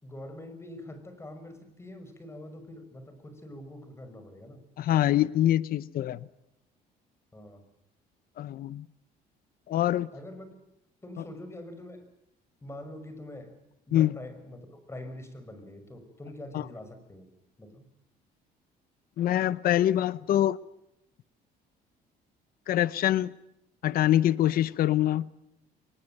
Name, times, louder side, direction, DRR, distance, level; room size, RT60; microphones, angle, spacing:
voice 1, 0.0-4.6 7.3-7.6 10.1-10.5 11.0-12.1 12.6-13.5 13.9-17.3 17.6-17.9, left 1 dB, 15° left, 9 dB, 5.9 m, -44 dB
voice 2, 4.8-6.3 8.4-8.9 9.7-10.1 13.9-14.1 16.5-16.6 19.2-20.6 22.7-23.3 23.8-25.3, left 12 dB, 60° left, 18 dB, 0.8 m, -24 dB
23.0 x 21.0 x 9.1 m, 0.84 s
cardioid pair, 110°, 17 cm